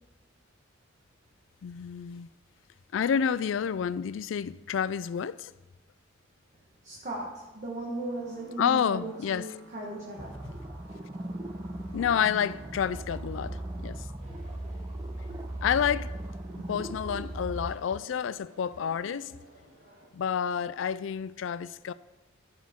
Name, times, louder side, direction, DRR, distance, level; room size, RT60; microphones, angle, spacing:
voice 1, 1.6-2.3 2.9-5.5 8.6-9.5 11.9-14.0 15.6-16.1 16.7-19.3 20.1-21.9, left 7 dB, 70° left, 0.3 m, -29 dB
voice 2, 6.8-10.5, right 1 dB, 40° right, 1.3 m, -37 dB
sound 1, 7.9-14.0, right 3 dB, 85° right, 1.2 m, -53 dB
sound 2, 10.2-17.7, right 1 dB, 20° right, 0.5 m, -38 dB
sound 3, 14.2-20.1, equal, 55° right, 3.3 m, -54 dB
14.5 x 6.2 x 3.6 m
head